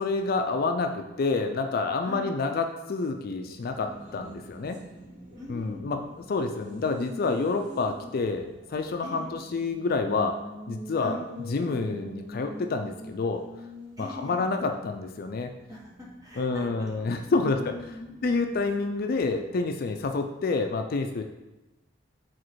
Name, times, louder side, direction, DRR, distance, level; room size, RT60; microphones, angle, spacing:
voice 1, 0.0-4.8 5.5-6.0 6.3-10.4 10.7-11.2 11.5-13.4 14.0-15.5 16.4-17.7 18.2-21.2, left 3 dB, 55° left, 6 dB, 0.4 m, -28 dB
Race car auto racing, 3.3-19.5, equal, 45° right, 2.1 m, -45 dB
voice 2, 5.3-5.9 9.0-9.3 11.0-11.2 14.0-14.4 15.7-17.1 17.4-18.2, left 1 dB, 20° right, -5 dB, 1.6 m, -41 dB
4.9 x 4.1 x 4.6 m, 1.1 s
head